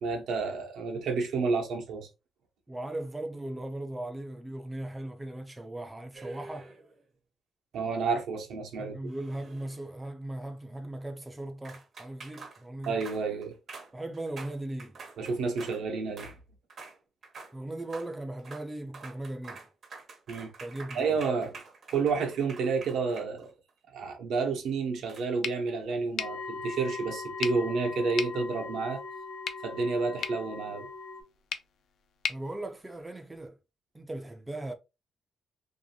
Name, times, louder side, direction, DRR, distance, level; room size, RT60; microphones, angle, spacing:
voice 1, 0.0-2.1 7.7-9.0 12.9-13.6 15.2-16.3 20.3-20.5 20.9-21.6 21.9-23.5 23.9-29.0 29.6-30.9, right 4 dB, 75° right, 0.8 m, -30 dB
voice 2, 2.7-6.7 8.8-13.0 13.9-15.0 17.5-19.6 20.6-21.2 32.3-33.6 33.9-34.7, right 1 dB, 10° right, 0.3 m, -38 dB
sound 1, 6.1-7.0 9.0-10.0 11.6-15.8 16.2-16.4 16.7-17.0 17.2-17.5 17.8-18.1 18.4-18.7 18.9-23.7 25.1-25.2, right 4 dB, 45° right, 0.7 m, -47 dB
sound 2, 25.4-33.5, left 7 dB, 65° left, 0.3 m, -41 dB
sound 3, 26.2-31.2, left 3 dB, 90° left, 0.7 m, -40 dB
2.6 x 2.6 x 2.7 m
cardioid pair, 145°, 0 cm